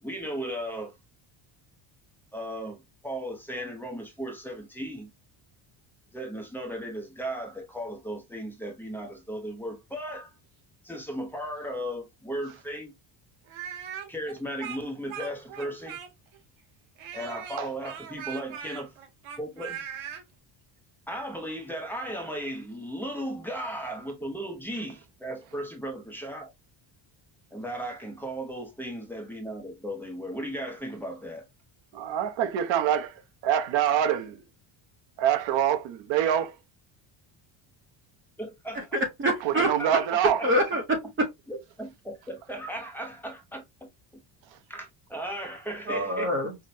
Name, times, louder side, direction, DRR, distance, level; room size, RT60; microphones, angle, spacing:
voice 1, 0.0-0.9 2.3-5.1 6.1-10.3 10.8-12.9 14.1-16.0 17.1-19.0 19.4-19.8 21.1-26.5 27.5-31.5 38.4-38.9 39.8-40.2 41.5-44.2 44.7-46.3, equal, 5° left, 0.6 m, -36 dB
Speech, 13.5-16.4 17.0-20.2, right 9 dB, 90° right, 1.1 m, -39 dB
voice 2, 31.9-33.1 33.4-34.4 35.2-36.5 39.4-40.4, right 10 dB, 65° right, 0.9 m, -25 dB
voice 3, 38.7-39.7 40.4-41.3 45.9-46.5, equal, 25° right, 0.8 m, -26 dB
5.7 x 2.1 x 2.7 m
cardioid pair, 180°, 48 cm